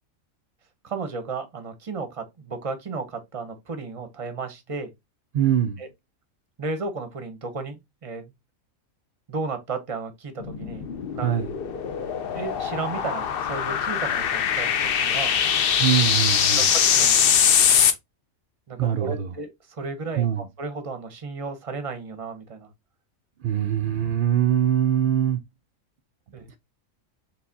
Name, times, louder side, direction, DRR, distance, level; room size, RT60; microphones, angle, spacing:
voice 1, 0.8-4.9 5.8-5.9 6.6-8.3 9.3-10.9 11.1-11.3 12.3-15.3 16.6-17.4 18.7-22.7 26.3-26.5, right 4 dB, 35° right, 0.6 m, -34 dB
voice 2, 5.3-5.8 11.2-11.5 15.8-16.7 18.8-19.3 20.2-20.5 23.4-25.4, right 10 dB, 80° right, 0.4 m, -23 dB
sound 1, 10.4-17.9, left 8 dB, 60° left, 0.6 m, -22 dB
4.6 x 3.4 x 2.6 m
omnidirectional pair, 1.5 m